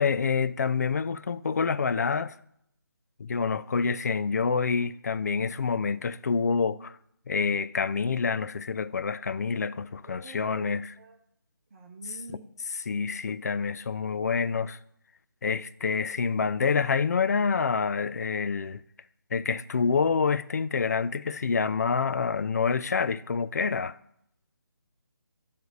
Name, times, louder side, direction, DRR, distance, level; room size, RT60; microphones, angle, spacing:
voice 1, 0.0-2.4 3.2-7.0 7.3-10.9 12.7-14.8 15.4-18.8 19.3-24.0, left 5 dB, 45° left, 0.4 m, -27 dB
voice 2, 10.1-11.2 11.7-12.5 12.8-13.2, right 3 dB, 35° right, 0.9 m, -48 dB
10.5 x 3.5 x 6.4 m
figure-of-eight pair, 155°, 12 cm